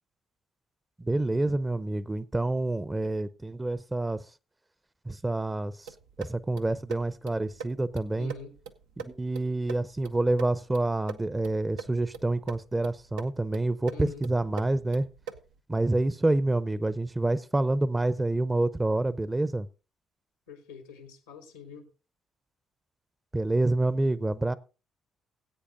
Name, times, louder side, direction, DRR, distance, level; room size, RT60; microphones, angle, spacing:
voice 1, 1.0-4.2 5.1-5.7 6.2-8.3 9.0-15.1 15.7-19.7 23.3-24.5, right 2 dB, 20° right, 0.6 m, -27 dB
sound 1, 5.9-15.6, right 6 dB, 80° right, 0.5 m, -44 dB
voice 2, 8.1-8.5 13.9-14.3 20.5-21.9, left 6 dB, 90° left, 1.4 m, -46 dB
19.5 x 8.4 x 2.6 m
hypercardioid pair, 45°, 0 cm